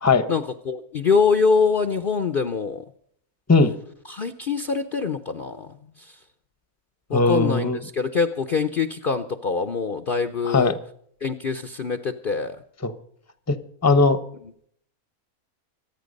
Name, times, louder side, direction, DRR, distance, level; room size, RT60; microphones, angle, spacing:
voice 1, 0.3-2.8 4.1-5.7 7.1-10.7 11.2-12.6, left 5 dB, 45° left, 10 dB, 0.8 m, -24 dB
voice 2, 7.1-7.8 10.4-10.8 12.8-12.9 13.5-13.6 13.8-14.2, left 3 dB, 15° left, 13 dB, 0.8 m, -19 dB
25.5 x 9.3 x 5.3 m, 0.65 s
omnidirectional pair, 1.5 m